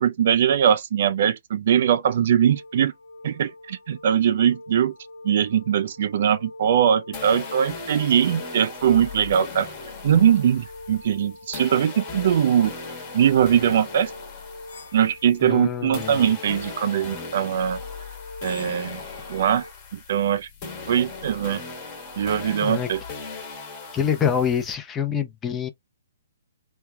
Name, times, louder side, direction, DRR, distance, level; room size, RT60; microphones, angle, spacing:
voice 1, 0.0-2.9 3.2-4.9 5.2-9.7 10.0-12.7 13.1-14.1 14.9-17.8 18.4-19.0 19.3-19.7 19.9-20.5 20.9-21.6 22.2-23.0, right 9 dB, 55° right, 0.4 m, -21 dB
sound 1, 2.4-19.7, left 2 dB, 60° left, 1.2 m, -44 dB
sound 2, 7.1-15.6 15.9-24.7, left 4 dB, 35° left, 1.2 m, -38 dB
voice 2, 15.4-16.3 22.6-22.9 23.9-25.7, left 8 dB, 15° left, 0.6 m, -26 dB
3.3 x 2.3 x 2.2 m
figure-of-eight pair, 125°, 0 cm